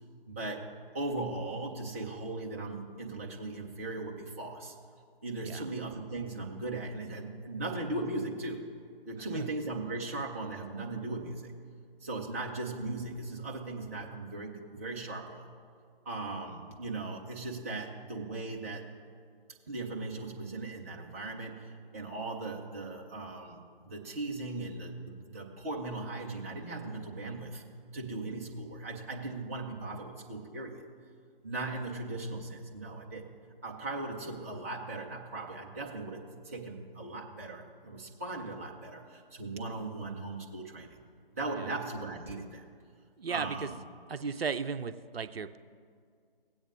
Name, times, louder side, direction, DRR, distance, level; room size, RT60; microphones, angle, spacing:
voice 1, 0.3-0.7 0.9-4.7 5.2-8.6 9.1-11.5 12.0-15.5 16.1-18.8 19.7-27.6 27.9-30.9 31.4-33.2 33.6-41.0 41.3-42.6 43.3-43.7, right 2 dB, 15° right, -1 dB, 0.5 m, -38 dB
voice 2, 43.2-43.7 44.1-45.6, right 5 dB, 80° right, 11 dB, 0.5 m, -35 dB
17.0 x 8.7 x 2.5 m, 2.2 s
figure-of-eight pair, 145°, 30 cm